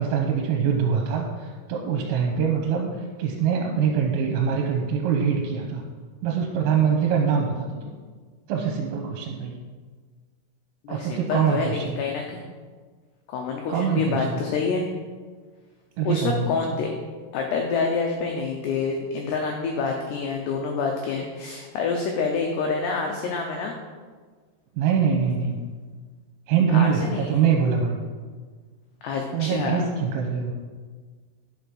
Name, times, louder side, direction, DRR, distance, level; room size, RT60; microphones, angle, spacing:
voice 1, 0.0-5.8 6.2-7.7 8.5-9.6 10.9-12.0 13.7-14.4 16.0-16.5 16.7-16.8 24.8-25.6 26.5-28.0 29.3-30.5, right 6 dB, 85° right, 0 dB, 3.5 m, -24 dB
voice 2, 10.8-12.4 13.3-14.9 16.1-16.9 17.3-23.7 26.7-27.4 29.0-29.8, left 4 dB, 85° left, 2 dB, 2.3 m, -27 dB
11.0 x 5.1 x 6.1 m, 1.5 s
omnidirectional pair, 5.9 m